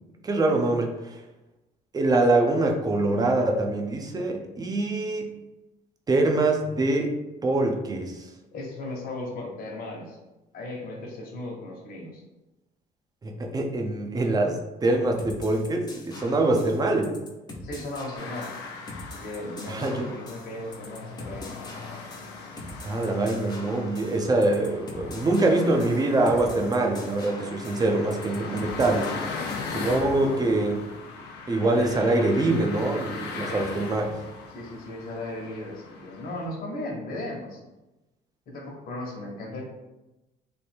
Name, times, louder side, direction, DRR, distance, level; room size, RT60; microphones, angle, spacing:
voice 1, 0.2-1.2 1.9-5.3 6.1-7.1 7.4-8.3 13.2-17.2 19.7-20.0 22.8-29.1 29.7-30.8 31.5-34.1, right 2 dB, 20° right, 2 dB, 0.6 m, -24 dB
voice 2, 8.5-10.2 10.5-12.2 17.6-18.6 19.1-21.5 29.7-30.4 33.4-33.7 34.5-37.6 38.5-39.6, left 1 dB, 60° left, -1 dB, 1.2 m, -36 dB
sound 1, 15.2-29.8, left 2 dB, 25° left, 0.7 m, -43 dB
sound 2, 18.1-36.4, left 4 dB, 85° left, 0.8 m, -39 dB
3.4 x 2.7 x 4.4 m, 1.0 s
cardioid pair, 110°, 17 cm